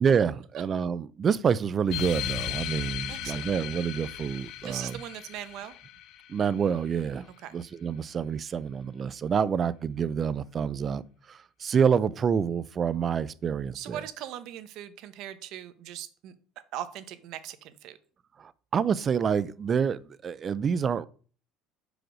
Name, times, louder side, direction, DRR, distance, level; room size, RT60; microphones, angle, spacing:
voice 1, 0.0-5.0 6.3-7.3 7.5-11.0 11.3-14.0 18.4-21.1, right 7 dB, 30° right, 0.4 m, -27 dB
sound 1, 1.9-6.9, left 12 dB, 60° left, 0.5 m, -37 dB
voice 2, 3.1-3.5 4.6-5.7 7.4-7.5 13.7-16.3 16.7-18.0, right 12 dB, 60° right, 0.8 m, -39 dB
5.1 x 4.9 x 6.2 m
cardioid pair, 125°, 0 cm